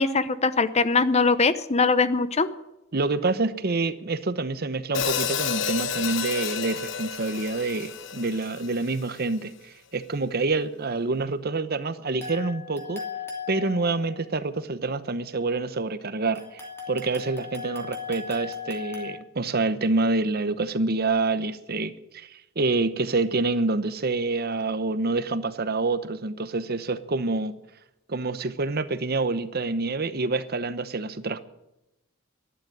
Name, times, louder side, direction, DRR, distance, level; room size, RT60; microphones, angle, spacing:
voice 1, 0.0-2.5, left 4 dB, 35° left, 0.8 m, -21 dB
voice 2, 2.9-13.0 13.5-16.6 16.9-27.6 28.1-31.4, right 3 dB, 50° right, 0.9 m, -27 dB
Hi-hat, 4.9-9.1, left 7 dB, 65° left, 0.9 m, -30 dB
sound 1, 12.2-14.2 16.3-19.1, left 6 dB, 15° left, 2.9 m, -37 dB
12.0 x 11.0 x 9.8 m
head